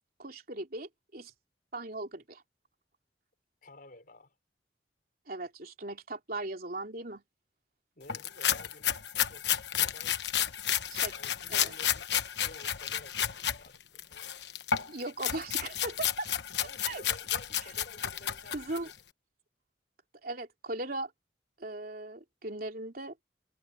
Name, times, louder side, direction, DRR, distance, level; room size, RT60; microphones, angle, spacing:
voice 1, 0.2-1.3 1.7-2.4 5.3-7.2 10.9-11.2 11.5-11.7 14.9-16.3 16.8-17.0 18.5-18.9 20.2-21.1 21.6-23.1, right 2 dB, 55° right, 3.3 m, -38 dB
voice 2, 3.6-4.4 8.0-8.9 9.3-9.5 9.8-10.2 11.1-12.1 12.4-14.4 16.6-18.8, left 1 dB, 50° left, 5.7 m, -53 dB
sound 1, 8.1-13.6 14.0-18.9, left 10 dB, 70° left, 1.1 m, -31 dB
head